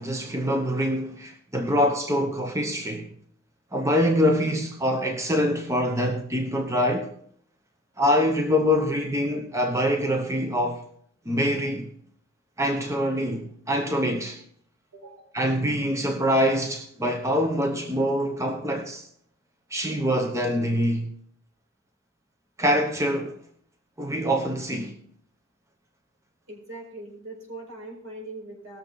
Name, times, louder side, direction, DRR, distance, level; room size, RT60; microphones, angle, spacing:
voice 1, 0.0-3.1 3.7-7.1 8.0-10.8 11.3-11.9 12.6-14.4 15.3-19.0 19.7-21.1 22.6-23.4 24.0-24.9, equal, 15° right, 1.0 m, -24 dB
voice 2, 14.9-15.3 26.5-28.8, right 2 dB, 80° right, 4.9 m, -41 dB
19.5 x 7.0 x 4.0 m
head